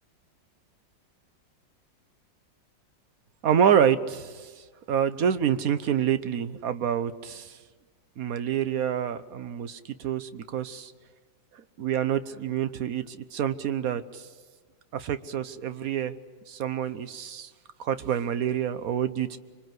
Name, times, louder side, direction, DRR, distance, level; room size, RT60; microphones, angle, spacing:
voice 1, 3.4-4.5 4.9-7.5 8.2-10.9 11.8-14.2 14.9-16.1 16.5-17.5 17.8-19.4, right 9 dB, 55° right, 1.2 m, -27 dB
26.0 x 23.5 x 7.9 m
omnidirectional pair, 2.0 m